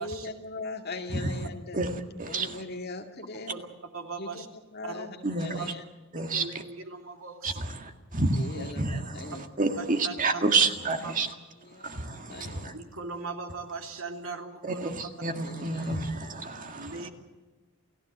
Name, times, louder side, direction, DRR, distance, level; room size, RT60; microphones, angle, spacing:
voice 1, 0.0-1.8 2.3-3.5 4.2-4.4 4.7-5.8 8.3-9.5 10.5-10.6 11.6-12.7 15.3-16.3, left 3 dB, 45° left, 4 dB, 2.2 m, -40 dB
voice 2, 1.7-2.6 5.2-5.6 6.1-6.5 7.4-8.4 8.8-9.2 9.6-11.3 11.8-12.7 14.6-17.1, right 3 dB, 35° right, 6 dB, 1.9 m, -29 dB
voice 3, 3.9-4.5 4.8-5.1 5.5-5.7 6.3-7.7 8.6-8.7 9.8-10.5 11.0-11.1 12.7-14.9 16.7-17.1, right 4 dB, 65° right, 4 dB, 3.0 m, -39 dB
29.0 x 15.5 x 8.1 m, 1.3 s
head